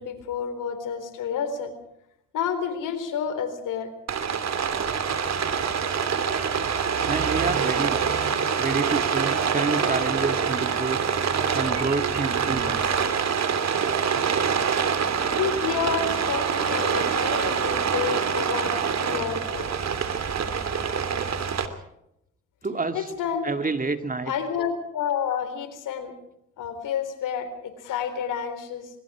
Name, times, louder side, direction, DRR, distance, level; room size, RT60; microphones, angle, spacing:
voice 1, 0.0-1.7 2.3-3.9 15.4-19.7 22.9-23.5 24.3-26.1 26.6-28.9, left 7 dB, 85° left, 8 dB, 4.0 m, -29 dB
Rain, 4.1-21.7, right 6 dB, 60° right, 2.9 m, -25 dB
voice 2, 7.1-8.0 8.6-11.0 11.5-12.9 22.6-23.1 23.4-24.3, right 3 dB, 25° right, 7 dB, 2.2 m, -28 dB
26.0 x 22.5 x 4.9 m, 0.79 s
cardioid pair, 80°, 31 cm